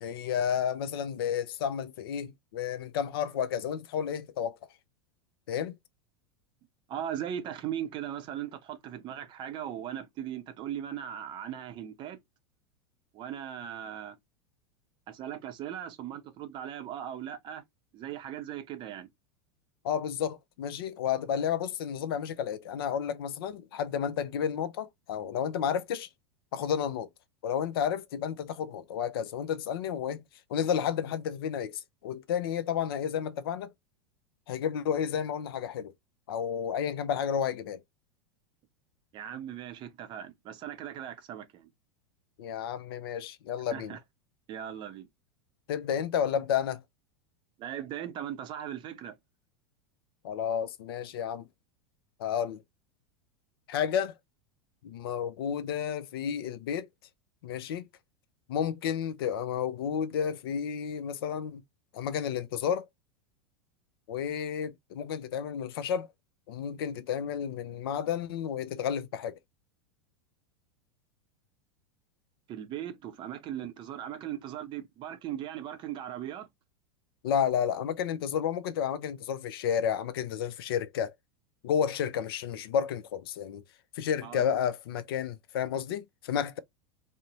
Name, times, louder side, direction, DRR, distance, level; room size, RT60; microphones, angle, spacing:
voice 1, 0.0-4.6 5.5-5.7 19.8-26.1 26.5-27.1 27.4-30.2 30.5-33.7 34.5-35.9 36.3-37.8 42.4-44.0 45.7-46.8 50.2-51.4 52.2-52.6 53.7-54.1 54.8-56.9 57.4-57.8 58.5-61.6 61.9-62.9 64.1-66.1 66.5-69.4 77.2-81.1 81.6-83.6 83.9-86.6, left 8 dB, 60° left, 0.4 m, -31 dB
voice 2, 6.9-12.2 13.1-14.2 15.1-17.6 17.9-19.1 39.1-41.7 43.7-44.0 44.5-45.1 47.6-49.2 72.5-76.5 84.2-84.4, right 10 dB, 35° right, 0.6 m, -38 dB
2.5 x 2.0 x 2.8 m
figure-of-eight pair, 85°, 14 cm